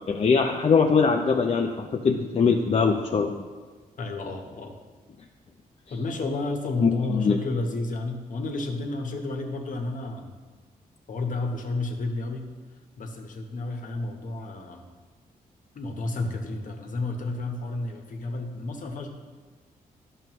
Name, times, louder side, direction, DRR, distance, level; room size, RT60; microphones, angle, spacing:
voice 1, 0.1-3.4 6.8-7.4, left 5 dB, 40° left, 3 dB, 0.5 m, -22 dB
voice 2, 4.0-4.7 5.9-10.3 11.1-12.5 13.0-14.8 15.7-19.1, left 2 dB, 60° left, 3 dB, 1.2 m, -31 dB
10.5 x 6.6 x 3.1 m, 1.4 s
cardioid pair, 80°, 15 cm